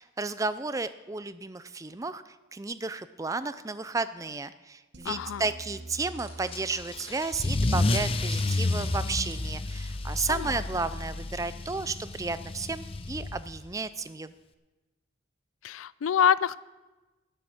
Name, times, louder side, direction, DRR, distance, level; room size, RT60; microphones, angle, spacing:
voice 1, 0.0-14.3, right 3 dB, 15° right, 14 dB, 0.4 m, -33 dB
sound 1, 4.9-10.2, right 2 dB, 60° right, 1.1 m, -49 dB
voice 2, 5.0-5.4 10.3-10.6 15.6-16.6, left 8 dB, 85° left, 19 dB, 0.4 m, -26 dB
sound 2, 5.7-10.4, right 2 dB, 80° right, 4.7 m, -53 dB
Car / Engine starting / Accelerating revving vroom, 6.5-13.7, left 2 dB, 25° left, 0.6 m, -30 dB
11.0 x 7.7 x 8.7 m, 1.2 s
head